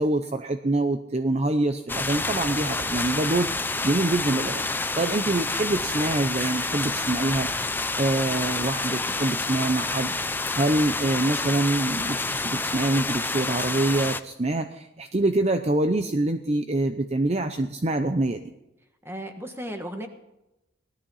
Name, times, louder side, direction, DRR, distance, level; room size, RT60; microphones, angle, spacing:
voice 1, 0.0-7.5 8.0-18.5, right 2 dB, 35° right, 8 dB, 0.7 m, -25 dB
sound 1, 1.9-14.2, left 3 dB, 10° left, 0.5 m, -28 dB
voice 2, 19.0-20.1, equal, 10° right, 6 dB, 1.5 m, -35 dB
17.5 x 12.5 x 5.6 m, 0.94 s
head